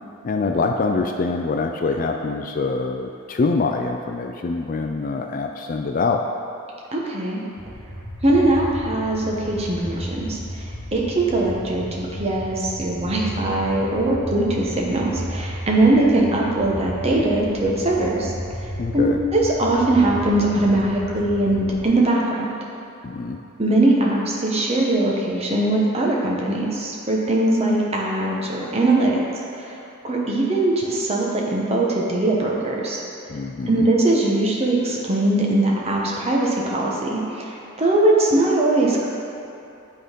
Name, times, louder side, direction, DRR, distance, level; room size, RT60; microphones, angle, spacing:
voice 1, 0.2-6.2 18.8-19.2 23.0-23.4 33.3-33.9, left 3 dB, 40° left, 3 dB, 0.3 m, -24 dB
voice 2, 6.9-7.4 8.2-18.3 18.6-18.7 18.9-22.5 23.6-29.2 29.5-29.8 30.0-33.0 33.7-39.1, right 2 dB, 30° right, -3 dB, 1.0 m, -21 dB
sound 1, 7.6-21.9, equal, 20° left, 0.7 m, -34 dB
8.7 x 3.9 x 5.2 m, 2.8 s
head